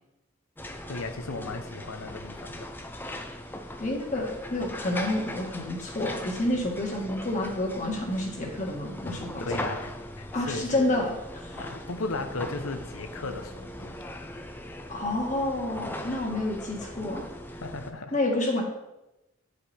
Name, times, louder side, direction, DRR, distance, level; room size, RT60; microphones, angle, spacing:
sound 1, 0.6-17.9, left 1 dB, 10° left, 0.4 m, -40 dB
voice 1, 0.9-2.7 9.4-10.9 11.5-14.0 17.5-18.2, left 3 dB, 85° left, 7 dB, 0.8 m, -36 dB
voice 2, 3.8-9.4 10.3-11.6 14.9-17.2 18.1-18.6, left 1 dB, 35° left, 0 dB, 1.7 m, -29 dB
9.6 x 5.1 x 4.3 m, 0.94 s
head